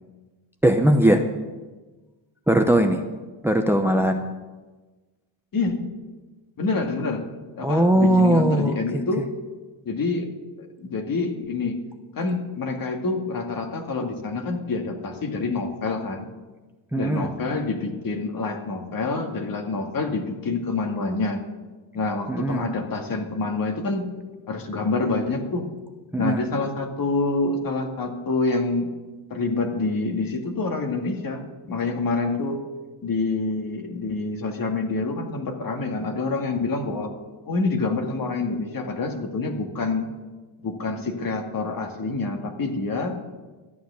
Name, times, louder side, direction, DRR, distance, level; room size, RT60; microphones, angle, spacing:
voice 1, 0.6-1.2 2.5-3.0 3.4-4.2 7.6-9.0 16.9-17.3 22.3-22.6 26.1-26.4, right 1 dB, 5° right, 6 dB, 0.8 m, -19 dB
voice 2, 5.5-5.9 6.6-7.3 7.6-9.3 9.8-10.3 10.6-11.7 12.1-16.3 16.9-21.4 21.9-24.1 24.5-25.7 26.2-28.9 29.3-32.6 33.0-37.1 37.5-40.1 40.6-43.2, left 3 dB, 45° left, 4 dB, 2.1 m, -27 dB
13.0 x 9.1 x 7.0 m, 1.3 s
cardioid pair, 105°, 47 cm